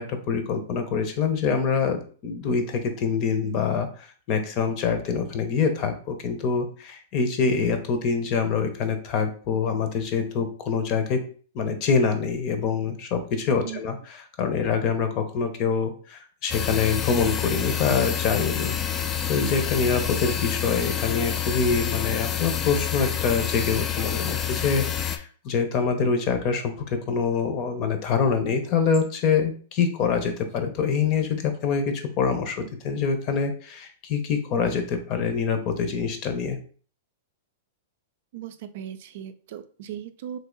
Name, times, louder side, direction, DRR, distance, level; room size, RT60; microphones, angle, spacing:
voice 1, 0.0-11.2 11.5-14.0 14.4-36.6, left 5 dB, 40° left, 7 dB, 0.7 m, -25 dB
sound 1, 16.5-25.2, left 9 dB, 20° left, 0.3 m, -28 dB
voice 2, 38.3-40.4, right 10 dB, 60° right, 10 dB, 0.4 m, -37 dB
3.3 x 2.7 x 3.8 m, 0.42 s
hypercardioid pair, 140°, 0 cm